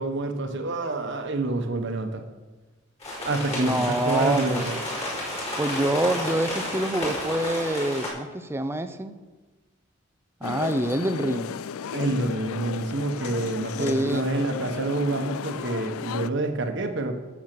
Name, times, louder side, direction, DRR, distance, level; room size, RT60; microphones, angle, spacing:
voice 1, 0.0-2.2 3.2-4.8 11.9-17.1, right 2 dB, 60° right, 5 dB, 1.1 m, -27 dB
sound 1, 3.0-8.1, left 1 dB, 30° left, 4.9 m, -31 dB
voice 2, 3.5-4.7 5.6-9.2 10.4-11.5 13.8-14.3, right 1 dB, 10° right, 10 dB, 0.6 m, -26 dB
sound 2, 10.4-16.3, left 7 dB, 85° left, 0.4 m, -34 dB
12.0 x 7.3 x 6.7 m, 1.2 s
head